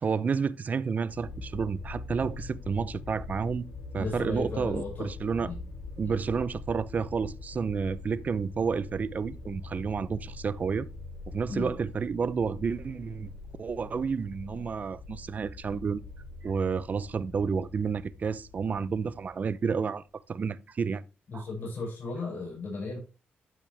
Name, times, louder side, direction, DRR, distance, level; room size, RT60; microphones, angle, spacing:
voice 1, 0.0-3.7 3.9-5.5 6.0-10.9 11.3-13.3 13.6-16.0 16.4-21.0 21.3-21.5, right 5 dB, 45° right, 0.6 m, -30 dB
sound 1, 1.1-20.0, left 3 dB, 80° left, 2.8 m, -43 dB
voice 2, 4.0-5.1 5.4-5.6 6.0-6.2 11.5-11.7 21.3-23.0, left 3 dB, 60° left, 6.3 m, -35 dB
12.5 x 5.9 x 3.4 m
cardioid pair, 100°, 4 cm